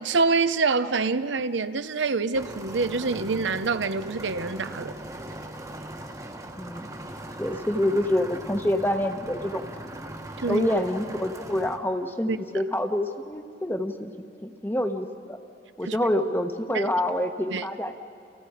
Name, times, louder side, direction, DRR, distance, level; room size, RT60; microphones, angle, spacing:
voice 1, 0.0-4.9 10.4-10.7 12.3-12.4 15.8-16.0 16.7-16.9 17.5-17.6, right 4 dB, 85° right, 0.8 m, -26 dB
sound 1, 2.3-11.8, right 1 dB, 20° right, 1.2 m, -39 dB
voice 2, 6.6-7.0 7.4-9.6 10.5-14.1 14.4-15.4 15.8-18.0, left 1 dB, 10° left, 1.1 m, -27 dB
30.0 x 29.0 x 5.0 m
head